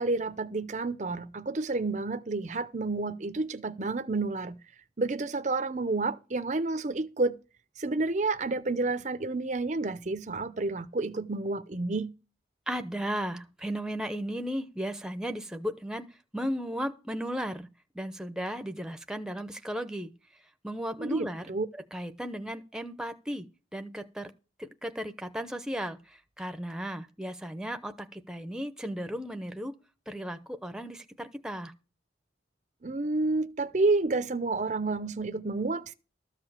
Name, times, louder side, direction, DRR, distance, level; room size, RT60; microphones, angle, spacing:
voice 1, 0.0-4.6 5.0-7.4 7.8-12.1 21.0-21.7 32.8-35.9, right 3 dB, 40° right, 0.6 m, -30 dB
voice 2, 12.7-16.1 16.3-17.7 17.9-20.1 20.6-21.5 21.7-23.5 23.7-24.3 24.6-29.7 30.1-31.7, equal, 5° right, 0.7 m, -35 dB
13.5 x 4.9 x 7.4 m
head